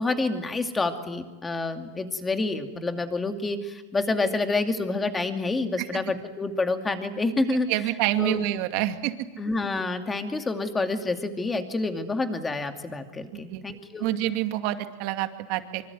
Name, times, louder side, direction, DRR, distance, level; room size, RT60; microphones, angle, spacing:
voice 1, 0.0-7.9 8.2-8.4 9.4-14.1, left 3 dB, 15° left, 6 dB, 2.5 m, -28 dB
voice 2, 7.7-9.1 13.3-13.6 14.0-15.8, right 14 dB, 55° right, 8 dB, 2.3 m, -27 dB
25.0 x 24.5 x 9.4 m, 1.2 s
supercardioid pair, 145°, 0 cm